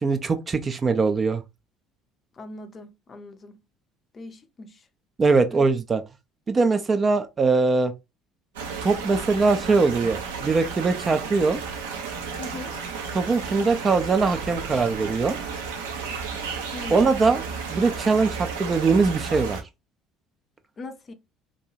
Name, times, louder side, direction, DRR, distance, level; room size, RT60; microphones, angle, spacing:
voice 1, 0.0-1.4 5.2-6.0 6.5-7.9 8.8-11.6 13.1-15.4 16.9-17.4 17.7-19.6, right 4 dB, 30° right, 0.4 m, -21 dB
voice 2, 2.4-3.6 4.1-4.9 5.5-5.7 12.4-12.7 16.7-17.3 20.8-21.1, left 2 dB, 35° left, 0.5 m, -40 dB
sound 1, 8.5-19.6, right 5 dB, 75° right, 0.6 m, -33 dB
2.6 x 2.2 x 3.0 m
figure-of-eight pair, 60°, 0 cm